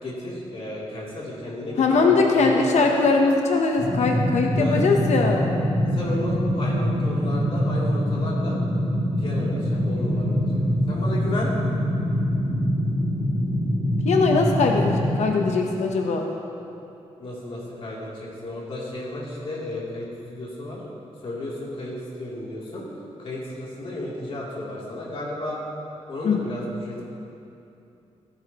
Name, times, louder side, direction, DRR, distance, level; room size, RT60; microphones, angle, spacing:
voice 1, 0.0-2.9 4.5-4.9 5.9-8.6 9.2-10.5 10.9-11.5 17.2-20.8 21.2-22.8 23.2-25.6 26.1-27.0, left 1 dB, 55° left, -6 dB, 3.0 m, -33 dB
voice 2, 1.8-5.5 14.0-16.3 26.2-26.4, left 4 dB, 80° left, 2 dB, 0.9 m, -21 dB
sound 1, 3.8-15.2, equal, 50° right, 2.9 m, -24 dB
17.0 x 10.5 x 3.0 m, 2.8 s
wide cardioid pair, 145°, 12 cm